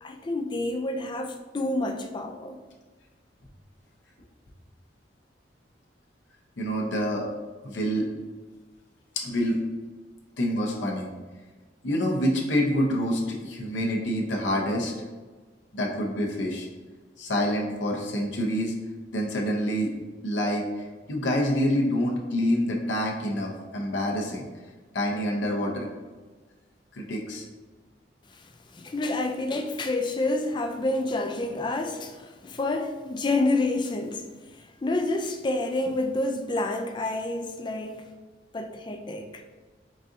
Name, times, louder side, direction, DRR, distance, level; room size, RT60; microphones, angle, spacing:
voice 1, 0.0-2.6 28.3-34.3 34.5-38.0 38.5-39.4, left 2 dB, 25° left, 0.3 m, -28 dB
voice 2, 6.6-7.3 7.6-8.1 9.2-9.6 10.4-11.1 11.8-14.9 15.7-16.7 17.2-18.7 19.1-19.9 20.2-24.5 24.9-25.9 26.9-27.4, equal, 80° left, 0.7 m, -27 dB
4.0 x 3.7 x 2.6 m
head